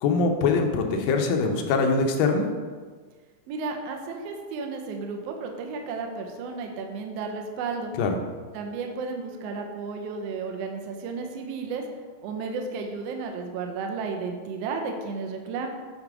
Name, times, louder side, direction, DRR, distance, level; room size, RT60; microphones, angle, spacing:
voice 1, 0.0-2.5 8.0-8.2, left 4 dB, 85° left, 3 dB, 2.5 m, -23 dB
voice 2, 3.5-7.9 8.5-11.8 12.2-15.7, right 4 dB, 80° right, 3 dB, 1.4 m, -33 dB
8.5 x 4.0 x 4.8 m, 1.5 s
omnidirectional pair, 3.9 m